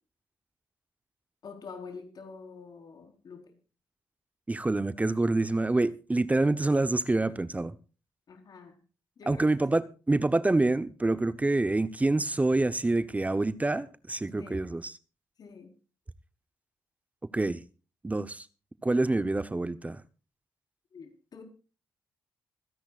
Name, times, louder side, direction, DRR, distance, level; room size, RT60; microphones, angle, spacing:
voice 1, 1.4-3.6 8.3-8.8 9.2-9.8 14.4-14.7 15.4-15.7 20.9-21.4, left 5 dB, 60° left, 4.4 m, -46 dB
voice 2, 4.5-7.7 9.3-9.8 10.1-14.9 17.3-17.6 18.0-18.5 18.8-20.0, right 2 dB, 20° right, 0.9 m, -26 dB
26.0 x 10.5 x 2.5 m
supercardioid pair, 60°, 8 cm